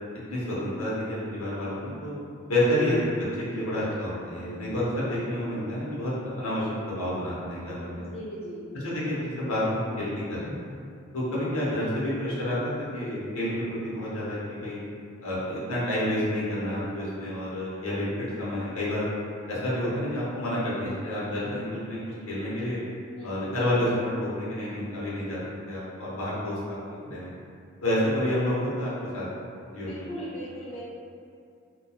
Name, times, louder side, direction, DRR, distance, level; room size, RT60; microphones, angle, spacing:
voice 1, 0.3-2.1 2.5-8.0 8.8-10.5 11.1-13.5 13.8-14.8 15.2-19.1 19.5-22.8 23.2-25.4 25.7-26.8 27.0-27.3 27.8-29.3 29.7-30.1, left 1 dB, 90° left, -8 dB, 0.8 m, -29 dB
voice 2, 2.4-2.8 7.9-8.7 19.8-20.0 23.1-23.4 29.8-30.8, equal, 30° left, -8 dB, 0.3 m, -40 dB
2.8 x 2.2 x 2.3 m, 2.4 s
head